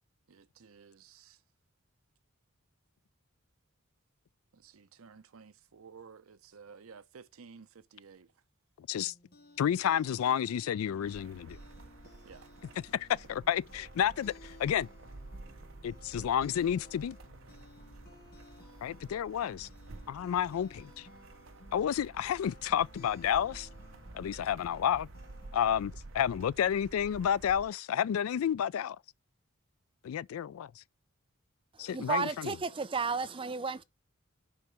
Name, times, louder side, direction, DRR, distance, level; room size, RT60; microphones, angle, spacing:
voice 1, 0.3-1.4 4.5-8.3 12.2-12.5, right 5 dB, 85° right, 0.7 m, -54 dB
voice 2, 8.8-9.1 9.6-11.6 12.9-14.9 15.8-17.2 18.8-19.7 20.1-21.1 21.7-23.7 24.1-25.1 25.5-29.0 30.0-30.8 31.8-32.6, left 9 dB, 85° left, 0.3 m, -30 dB
sound 1, 9.0-26.0, left 2 dB, 45° left, 2.1 m, -57 dB
sound 2, 11.0-27.7, right 2 dB, 65° right, 0.9 m, -51 dB
voice 3, 31.9-33.8, right 5 dB, 25° right, 0.5 m, -33 dB
7.2 x 4.7 x 5.0 m
head